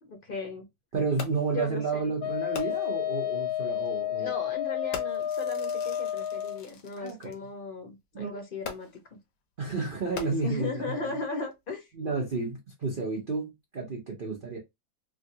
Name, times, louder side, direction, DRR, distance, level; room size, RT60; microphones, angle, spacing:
voice 1, 0.0-0.7 1.5-2.1 4.2-8.9 10.1-11.9, left 3 dB, 45° left, 0.7 m, -37 dB
voice 2, 0.9-4.3 7.0-7.3 8.1-8.4 9.6-11.1 11.9-14.6, right 4 dB, 85° right, 0.4 m, -31 dB
Fireworks, 1.2-1.6 2.5-3.1 3.9-4.1 4.9-7.4 8.6-9.2 10.0-10.8 11.5-11.6, left 6 dB, 75° left, 1.4 m, -42 dB
Wind instrument woodwind instrument, 2.2-6.6, left 10 dB, 90° left, 1.5 m, -31 dB
3.6 x 2.3 x 2.7 m
omnidirectional pair, 2.1 m